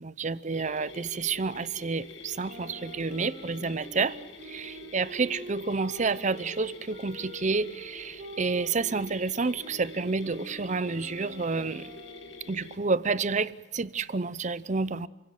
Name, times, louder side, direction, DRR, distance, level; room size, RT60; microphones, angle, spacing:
voice 1, 0.0-4.2 4.5-11.9 12.5-15.1, right 4 dB, 40° right, 0.7 m, -29 dB
sound 1, 0.5-12.8, left 3 dB, 70° left, 2.1 m, -47 dB
sound 2, 2.5-9.2 9.6-12.6, right 2 dB, 55° right, 3.0 m, -46 dB
29.5 x 17.0 x 7.6 m
head